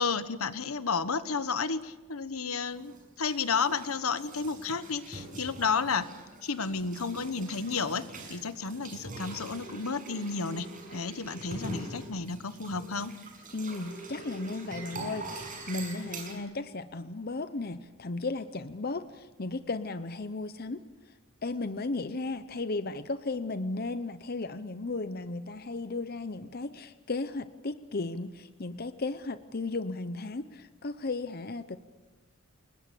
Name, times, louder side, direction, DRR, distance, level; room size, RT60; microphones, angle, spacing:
voice 1, 0.0-6.1 6.4-10.7 10.9-13.1 16.3-16.5, left 5 dB, 80° left, 13 dB, 1.3 m, -32 dB
sound 1, 2.7-16.3, right 2 dB, 40° right, 6.3 m, -44 dB
voice 2, 13.5-20.8 21.4-31.8, left 3 dB, 45° left, 12 dB, 0.8 m, -35 dB
29.5 x 21.0 x 7.0 m, 1.1 s
head